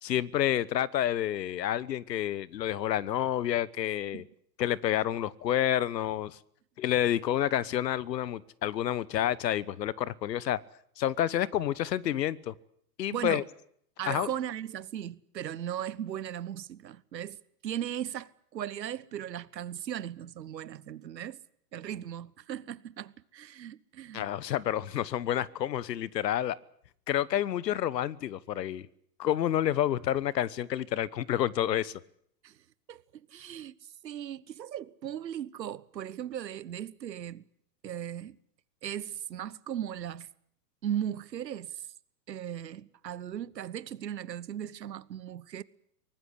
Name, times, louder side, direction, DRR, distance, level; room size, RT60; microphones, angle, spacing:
voice 1, 0.0-4.2 4.6-6.4 6.8-10.6 11.0-12.5 13.0-13.4 14.1-14.3 24.1-26.6 27.1-28.9 29.2-31.9, left 11 dB, 75° left, 1.2 m, -29 dB
voice 2, 13.1-13.4 14.0-21.4 21.7-24.3 32.4-32.5 32.9-33.0 33.3-33.7 34.0-37.4 37.8-38.4 38.8-40.3 40.8-41.9 42.3-45.6, right 10 dB, 85° right, 1.2 m, -37 dB
23.5 x 19.0 x 8.2 m
hypercardioid pair, 120°, 50 cm